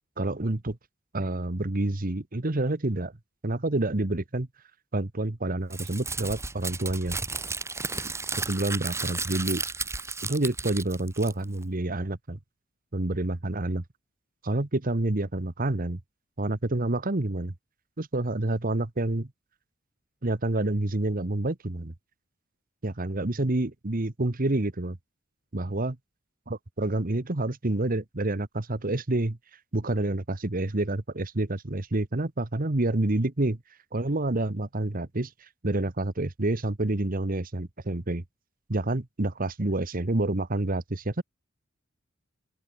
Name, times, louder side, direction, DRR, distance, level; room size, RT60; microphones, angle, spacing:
voice 1, 0.2-0.8 1.1-3.1 3.4-4.5 4.9-7.2 8.5-9.6 10.2-12.4 12.9-13.8 14.4-16.0 16.4-17.5 18.0-19.3 20.2-21.9 22.8-25.0 25.5-25.9 26.5-29.4 29.7-33.6 33.9-38.2 38.7-41.2, right 2 dB, 45° right, 1.3 m, -28 dB
Crumpling crinkling, 5.7-11.6, right 4 dB, 15° right, 1.8 m, -33 dB
open air
head